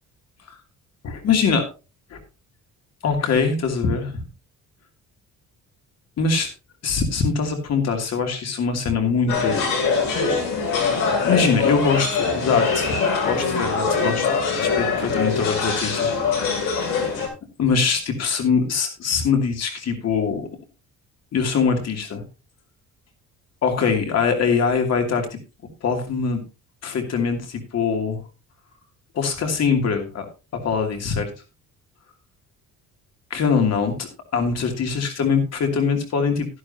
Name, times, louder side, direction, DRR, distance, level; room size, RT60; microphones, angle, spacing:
voice 1, 1.0-1.6 2.1-2.2 3.0-4.2 6.2-6.5 6.8-9.7 10.9-14.3 14.5-17.0 17.6-20.4 21.3-22.2 23.6-25.3 25.8-26.4 26.8-28.2 29.1-30.3 30.6-31.3 33.3-36.5, left 5 dB, 50° left, 4 dB, 2.7 m, -23 dB
sound 1, 9.3-17.3, left 5 dB, 80° left, 6.2 m, -23 dB
12.5 x 11.0 x 2.8 m, 0.29 s
cardioid pair, 160°, 33 cm